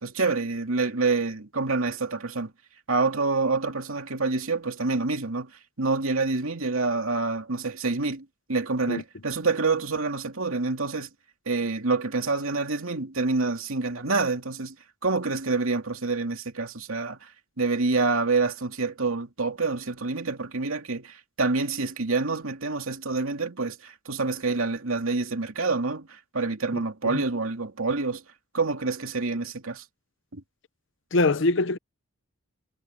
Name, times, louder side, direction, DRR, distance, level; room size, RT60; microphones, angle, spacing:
voice 1, 0.0-2.5 2.9-5.5 5.8-11.1 11.5-14.7 15.0-17.3 17.6-28.2 28.5-29.8 30.3-30.4, right 3 dB, 75° right, 2.6 m, -27 dB
voice 2, 31.1-31.8, left 2 dB, 60° left, 0.8 m, -23 dB
head